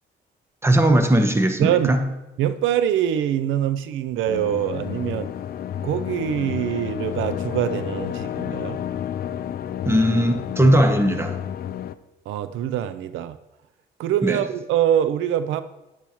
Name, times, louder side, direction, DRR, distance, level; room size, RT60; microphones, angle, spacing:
voice 1, 0.6-2.0 9.8-11.4 14.2-14.4, right 1 dB, 10° right, 6 dB, 1.0 m, -18 dB
voice 2, 1.6-2.0 2.4-5.3 5.8-8.8 12.3-13.4 14.0-15.6, right 10 dB, 85° right, 12 dB, 0.4 m, -24 dB
sound 1, 4.3-12.0, left 10 dB, 50° left, 0.4 m, -30 dB
8.5 x 8.3 x 3.0 m, 1.0 s
cardioid pair, 90°, 20 cm